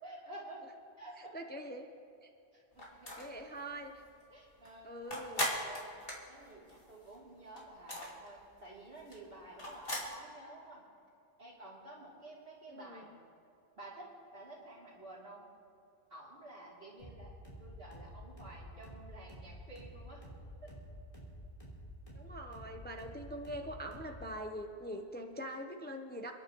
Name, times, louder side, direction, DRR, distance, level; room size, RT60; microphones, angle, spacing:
voice 1, 0.0-0.6 1.0-1.4 2.5-3.3 4.3-4.9 5.3-10.8 11.4-13.2 13.8-15.5 16.1-20.2 20.6-20.8, right 2 dB, 60° right, -6 dB, 3.4 m, -51 dB
voice 2, 1.2-1.9 2.2-2.3 3.2-4.0 4.8-5.5 12.7-13.1 22.1-26.3, equal, 10° left, 3 dB, 0.7 m, -43 dB
sound 1, 2.8-3.4 3.8-3.9 4.2-7.2 7.5-10.1, left 1 dB, 55° left, 2.6 m, -38 dB
sound 2, 17.0-24.4, equal, 30° left, 3.7 m, -50 dB
29.0 x 11.0 x 3.1 m, 2.6 s
omnidirectional pair, 1.1 m